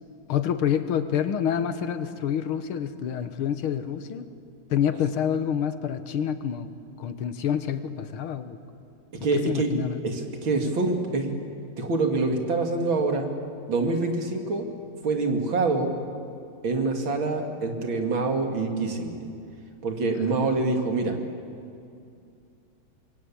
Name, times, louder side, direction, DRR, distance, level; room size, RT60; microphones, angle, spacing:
voice 1, 0.3-4.3 4.7-6.7 7.0-8.6 9.3-10.0 20.2-20.6, left 9 dB, 85° left, 10 dB, 2.0 m, -27 dB
voice 2, 9.2-9.7 10.0-11.4 11.8-13.3 13.7-14.6 15.0-15.9 16.6-19.3 19.8-21.2, right 3 dB, 70° right, 3 dB, 3.1 m, -25 dB
26.0 x 22.0 x 8.7 m, 2.5 s
omnidirectional pair, 2.3 m